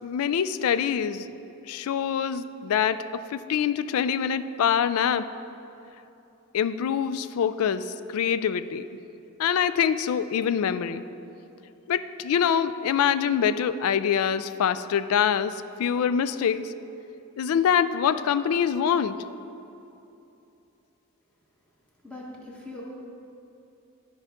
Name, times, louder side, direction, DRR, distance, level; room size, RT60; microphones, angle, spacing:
voice 1, 0.0-1.3 1.7-3.0 3.3-5.2 6.5-7.9 8.1-8.9 9.4-11.0 11.9-16.7 17.4-19.2, left 8 dB, 75° left, 13 dB, 0.3 m, -25 dB
voice 2, 22.0-22.9, left 1 dB, 5° left, -4 dB, 1.1 m, -40 dB
12.5 x 4.8 x 3.5 m, 2.9 s
head